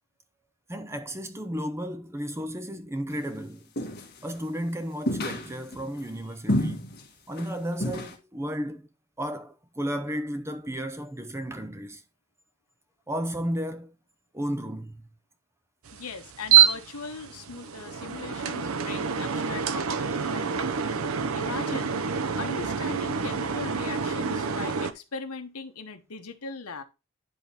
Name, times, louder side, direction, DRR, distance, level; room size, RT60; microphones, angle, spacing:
voice 1, 0.7-3.6 4.2-6.9 7.3-8.9 9.2-12.0 13.1-13.9 14.3-15.0, equal, 10° right, 0.6 m, -33 dB
sound 1, 3.8-4.3 5.1-5.9 6.5-7.0 7.3-7.5 7.8-8.1, left 1 dB, 45° left, 1.7 m, -29 dB
voice 2, 15.9-20.5 21.3-26.8, left 4 dB, 80° left, 1.1 m, -39 dB
sound 2, 15.9-24.9, right 8 dB, 70° right, 0.6 m, -26 dB
10.5 x 3.6 x 4.2 m
head